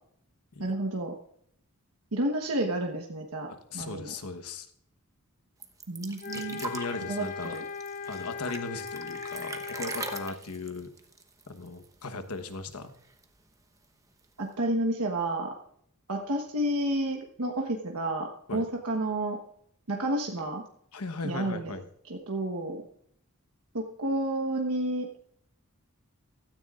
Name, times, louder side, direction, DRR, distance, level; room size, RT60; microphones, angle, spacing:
voice 1, 0.6-1.1 2.1-4.1 5.9-6.6 7.1-7.6 14.4-15.5 16.1-19.4 19.9-20.6 21.2-21.7 22.1-22.8 23.7-25.1, right 1 dB, 75° right, 1 dB, 1.3 m, -30 dB
voice 2, 3.5-4.7 6.3-7.5 8.0-10.9 11.5-12.9 18.5-18.6 20.9-21.9, left 3 dB, 80° left, 9 dB, 1.1 m, -38 dB
sound 1, 5.6-12.0 12.3-12.4 12.7-13.4 14.2-14.3, right 3 dB, 15° right, 1.0 m, -41 dB
sound 2, 6.2-10.4, left 5 dB, 35° left, 0.6 m, -38 dB
16.0 x 13.5 x 2.5 m, 0.69 s
head